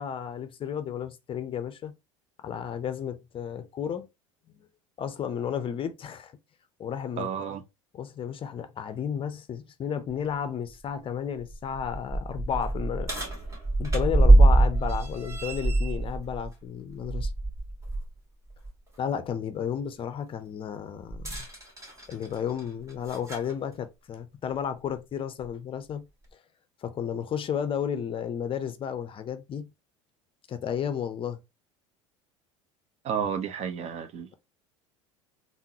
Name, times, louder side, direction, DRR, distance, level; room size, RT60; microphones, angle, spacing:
voice 1, 0.0-1.9 2.4-4.1 5.0-6.3 6.8-7.3 7.9-13.1 13.8-17.3 19.0-21.5 22.1-26.1 26.8-29.6 30.5-31.4, left 8 dB, 35° left, 0.5 m, -32 dB
voice 2, 7.2-7.6 33.0-34.4, right 7 dB, 45° right, 0.6 m, -31 dB
sound 1, 10.1-10.2 10.7-10.8 11.4-18.1 18.5-18.7 21.1-23.5 24.5-24.6 25.4-25.5, right 2 dB, 20° right, 1.7 m, -24 dB
3.6 x 2.0 x 2.8 m
hypercardioid pair, 75°, 16 cm